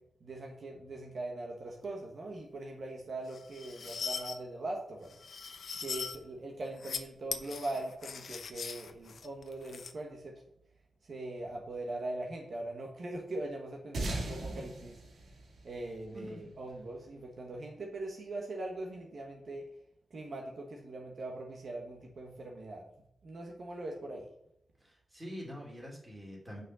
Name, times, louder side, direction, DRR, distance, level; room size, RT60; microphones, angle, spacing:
voice 1, 0.2-5.2 5.8-10.3 11.0-15.0 15.6-19.7 20.1-22.8 23.2-24.3, right 2 dB, 55° right, 0 dB, 1.3 m, -41 dB
sound 1, 3.3-4.4 5.1-6.2 6.7-7.0 7.3-9.9, left 5 dB, 65° left, 0.7 m, -40 dB
sound 2, 13.9-16.7, right 2 dB, 85° right, 2.2 m, -39 dB
voice 2, 16.1-16.5 24.8-26.6, equal, 15° right, -2 dB, 2.6 m, -45 dB
6.3 x 5.4 x 6.8 m, 0.77 s
wide cardioid pair, 150°, 0 cm